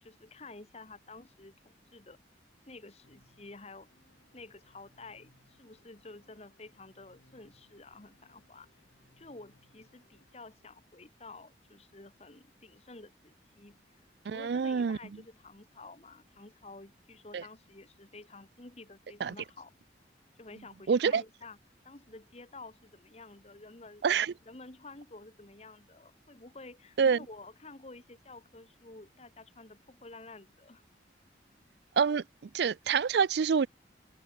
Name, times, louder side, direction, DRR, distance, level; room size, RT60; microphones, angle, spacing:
voice 1, 0.0-2.2 2.7-3.9 4.3-8.7 9.2-19.7 20.3-21.6 21.8-24.0 24.5-30.8, left 3 dB, 35° left, 1.4 m, -51 dB
sound 1, 3.0-10.6, left 1 dB, 80° left, 7.3 m, -67 dB
voice 2, 14.3-15.0 17.3-17.4 19.2-19.4 20.9-21.2 24.0-24.3 27.0-27.2 32.0-32.2 32.5-33.7, right 6 dB, 60° right, 0.4 m, -26 dB
head